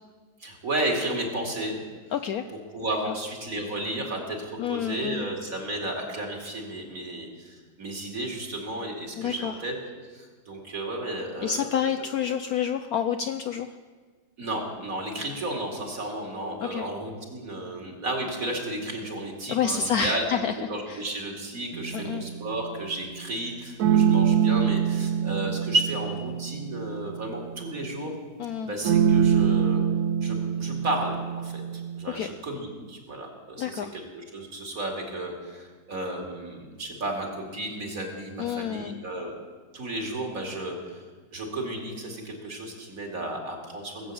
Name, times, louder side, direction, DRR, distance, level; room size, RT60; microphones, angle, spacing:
voice 1, 0.4-1.8 2.7-9.7 10.1-11.8 14.4-20.3 20.7-28.1 28.6-29.8 30.2-31.2 31.4-39.3 39.7-41.0 41.3-44.1, right 1 dB, 50° right, 0 dB, 2.9 m, -33 dB
voice 2, 2.1-2.4 3.1-3.2 4.6-5.3 9.2-9.5 11.4-13.7 16.6-16.9 19.5-20.5 20.9-21.0 21.9-22.2 28.4-28.7 32.1-32.3 33.6-33.9 38.4-39.0, left 8 dB, 70° left, 8 dB, 0.9 m, -28 dB
sound 1, 21.7-22.7 23.8-27.8 28.8-32.0, right 8 dB, 70° right, 0.7 m, -25 dB
19.0 x 7.6 x 8.5 m, 1.5 s
omnidirectional pair, 2.0 m